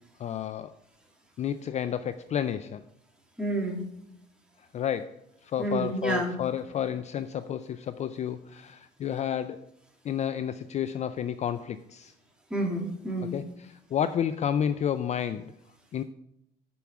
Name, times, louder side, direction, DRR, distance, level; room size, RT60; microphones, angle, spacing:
voice 1, 0.2-0.7 1.4-2.8 4.7-5.2 5.5-9.6 10.0-12.1 13.3-15.5 15.9-16.0, left 9 dB, 40° left, 13 dB, 0.4 m, -31 dB
voice 2, 3.4-3.8 5.6-6.3 12.5-13.4, right 1 dB, 5° right, 0 dB, 2.3 m, -29 dB
6.9 x 6.1 x 7.2 m, 0.79 s
cardioid pair, 110°, 17 cm